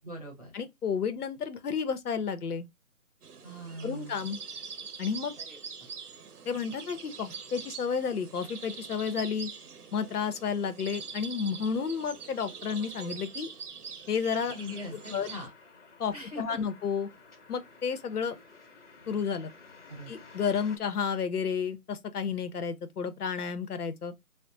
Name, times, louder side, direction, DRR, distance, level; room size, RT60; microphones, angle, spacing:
voice 1, 0.0-0.5 3.4-4.2 5.5-5.6 14.5-15.5 16.1-16.4 19.9-20.1, left 1 dB, 25° right, 0.9 m, -41 dB
voice 2, 0.5-2.7 3.8-4.4 5.0-5.4 6.5-9.5 9.9-13.5 14.1-14.6 14.9-15.3 16.0-17.1 17.5-18.4 19.1-19.5 20.1-24.1, left 6 dB, 85° left, 0.7 m, -31 dB
sound 1, 3.2-15.5, right 5 dB, 90° right, 0.8 m, -44 dB
sound 2, 14.5-20.8, left 4 dB, 55° left, 1.1 m, -53 dB
4.2 x 2.0 x 2.5 m
hypercardioid pair, 175°, 44 cm